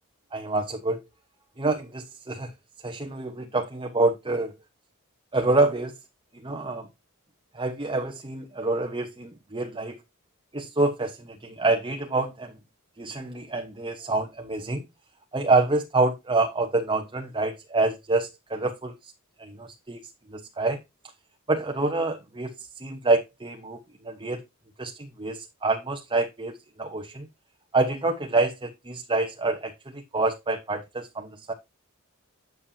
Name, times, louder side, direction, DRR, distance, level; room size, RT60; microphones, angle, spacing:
voice 1, 0.3-1.0 1.6-2.5 2.8-4.5 5.3-5.9 6.4-6.9 7.5-10.0 10.5-12.5 13.0-14.8 15.3-19.1 19.4-20.0 20.3-20.8 21.5-24.4 24.8-27.3 27.7-31.5, right 2 dB, 25° right, 1.1 m, -27 dB
9.4 x 7.4 x 2.8 m
head